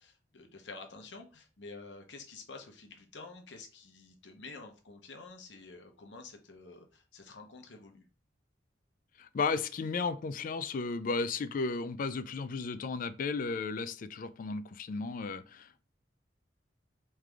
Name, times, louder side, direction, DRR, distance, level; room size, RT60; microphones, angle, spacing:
voice 1, 0.0-8.0, left 3 dB, 80° left, 0.9 m, -49 dB
voice 2, 9.2-15.8, left 4 dB, 50° left, 0.4 m, -34 dB
3.6 x 3.3 x 3.4 m
head